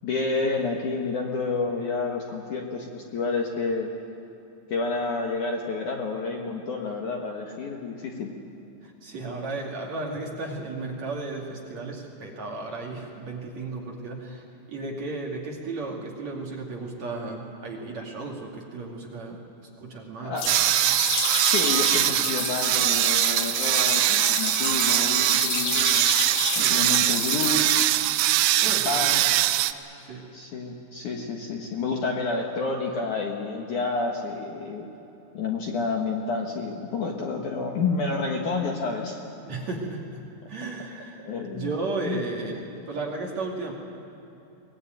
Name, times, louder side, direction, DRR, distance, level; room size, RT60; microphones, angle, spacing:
voice 1, 0.0-3.9 4.7-8.3 19.3-19.4 20.2-20.6 21.4-26.0 26.6-27.9 28.7-29.3 30.3-34.9 35.3-39.2 41.2-41.7 42.0-42.2, left 4 dB, 55° left, 1 dB, 2.4 m, -29 dB
voice 2, 8.8-20.6 26.6-26.8 28.6-29.1 30.0-30.3 39.4-40.2 40.5-41.2 41.5-43.7, right 3 dB, 45° right, -1 dB, 3.3 m, -34 dB
sound 1, 20.4-27.9, left 6 dB, 90° left, 1.3 m, -30 dB
sound 2, 20.5-29.7, right 15 dB, 85° right, 3.0 m, -22 dB
23.5 x 20.5 x 9.3 m, 3.0 s
omnidirectional pair, 5.0 m